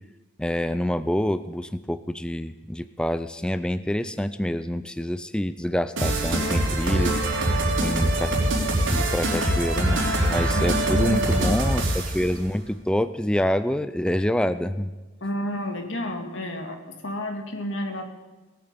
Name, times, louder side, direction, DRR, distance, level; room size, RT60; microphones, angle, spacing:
voice 1, 0.4-7.2 7.8-8.4 8.9-14.9, left 1 dB, 5° left, 12 dB, 0.4 m, -27 dB
sound 1, 6.0-12.2, right 1 dB, 85° right, 3.2 m, -23 dB
voice 2, 10.5-11.4 15.2-18.0, left 1 dB, 90° left, 4 dB, 2.0 m, -31 dB
18.0 x 8.8 x 7.0 m, 1.2 s
head